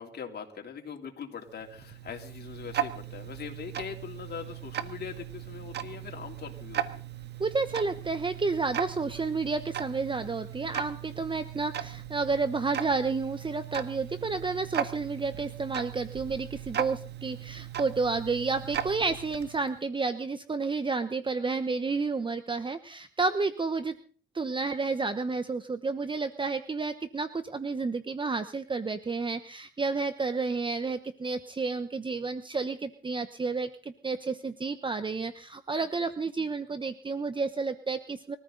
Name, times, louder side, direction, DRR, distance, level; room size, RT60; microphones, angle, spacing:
voice 1, 0.0-7.0, left 7 dB, 55° left, 2 dB, 3.4 m, -41 dB
Tick-tock, 1.5-19.8, right 10 dB, 60° right, 1.5 m, -38 dB
voice 2, 7.4-23.9 24.3-38.4, right 4 dB, 25° right, 10 dB, 1.0 m, -31 dB
24.5 x 14.5 x 4.0 m, 0.42 s
cardioid pair, 90°, 20 cm